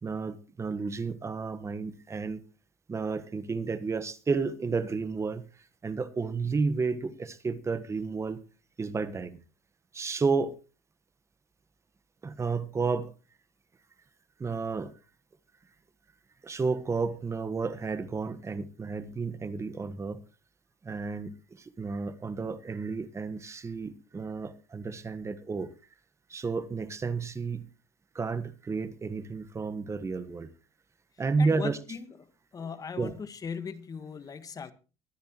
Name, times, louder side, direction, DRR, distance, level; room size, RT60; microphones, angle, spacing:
voice 1, 0.0-2.4 2.9-5.4 5.8-8.4 8.8-9.4 9.9-10.6 12.2-13.1 14.4-14.9 16.4-20.2 20.8-21.3 21.8-25.7 26.3-27.6 28.1-30.5 31.2-31.8 33.0-33.1, right 4 dB, 25° right, 1.5 m, -31 dB
voice 2, 31.4-32.2 32.5-34.7, left 6 dB, 35° left, 1.6 m, -38 dB
23.0 x 10.5 x 3.1 m
supercardioid pair, 85°, 11 cm